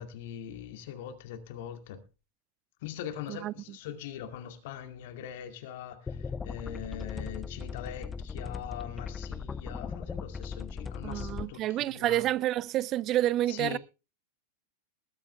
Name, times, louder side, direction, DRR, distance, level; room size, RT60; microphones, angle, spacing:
voice 1, 0.0-2.0 2.8-12.3 13.5-13.8, left 10 dB, 50° left, 2.2 m, -42 dB
sound 1, 6.1-11.5, left 5 dB, 15° left, 0.6 m, -38 dB
voice 2, 11.0-13.8, right 14 dB, 35° right, 0.5 m, -29 dB
21.0 x 8.7 x 3.4 m
figure-of-eight pair, 90°, 0 cm